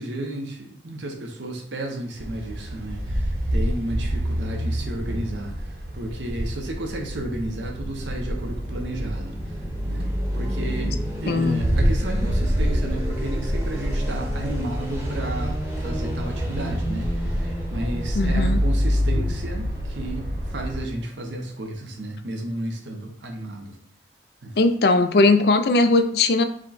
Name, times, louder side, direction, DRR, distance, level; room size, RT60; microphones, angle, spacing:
voice 1, 0.0-9.4 9.8-23.8 24.4-24.6, right 1 dB, 90° right, 3 dB, 0.8 m, -33 dB
sound 1, 2.2-20.8, equal, 55° right, 0.8 m, -27 dB
sound 2, 7.7-21.6, equal, 15° right, 0.8 m, -36 dB
voice 2, 11.3-11.6 18.1-18.6 24.6-26.4, left 3 dB, 60° left, 9 dB, 0.4 m, -19 dB
5.0 x 2.2 x 4.0 m, 0.62 s
head